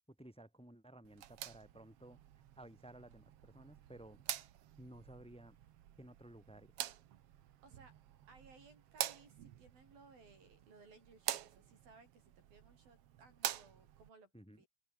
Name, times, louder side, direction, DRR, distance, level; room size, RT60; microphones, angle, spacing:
voice 1, 0.1-2.2 2.6-4.2 4.8-5.6 6.0-6.7 14.3-14.6, right 1 dB, ahead, 4.2 m, -56 dB
sound 1, 1.0-14.1, right 12 dB, 65° right, 1.5 m, -47 dB
voice 2, 7.6-7.9 8.3-14.3 14.6-14.7, right 4 dB, 80° right, 9.5 m, -62 dB
omnidirectional pair, 4.1 m